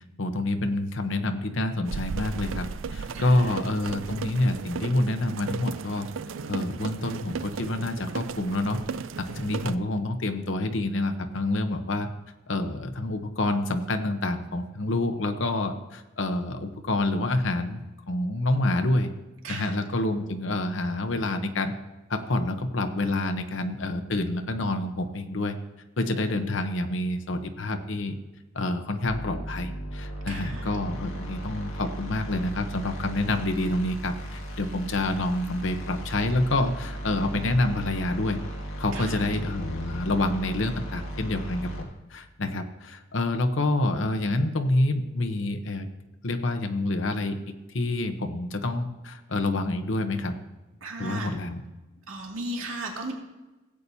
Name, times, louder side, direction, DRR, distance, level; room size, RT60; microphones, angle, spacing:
voice 1, 0.2-6.1 6.5-8.8 9.2-12.1 12.5-17.8 18.1-19.1 19.5-21.7 22.1-25.6 26.0-28.1 28.5-38.4 38.8-45.9 46.2-47.4 47.7-50.4 51.0-51.6, left 2 dB, 70° left, 6 dB, 0.9 m, -27 dB
sound 1, 1.9-9.8, right 5 dB, 75° right, 0.4 m, -35 dB
voice 2, 3.1-3.6 19.4-19.7 30.3-30.7 38.9-39.3 50.8-51.3 52.1-53.1, right 2 dB, 90° right, 0 dB, 2.2 m, -36 dB
sound 2, 29.1-41.8, right 1 dB, 85° left, 2.0 m, -36 dB
17.0 x 8.5 x 2.8 m, 1.1 s
head